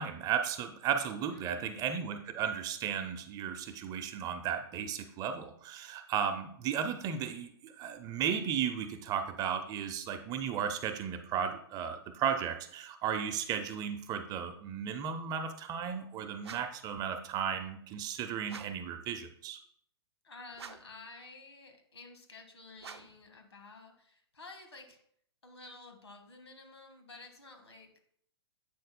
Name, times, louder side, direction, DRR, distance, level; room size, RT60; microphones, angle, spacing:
voice 1, 0.0-19.6, right 8 dB, 30° right, 8 dB, 0.7 m, -35 dB
voice 2, 1.3-2.0 20.2-25.0 25.4-28.1, left 3 dB, 85° left, 4 dB, 1.7 m, -52 dB
sound 1, 16.4-16.9 18.4-18.9 20.5-21.0 22.8-23.3, right 6 dB, 80° right, 0.6 m, -48 dB
8.3 x 6.4 x 2.2 m, 0.68 s
hypercardioid pair, 120°, 14 cm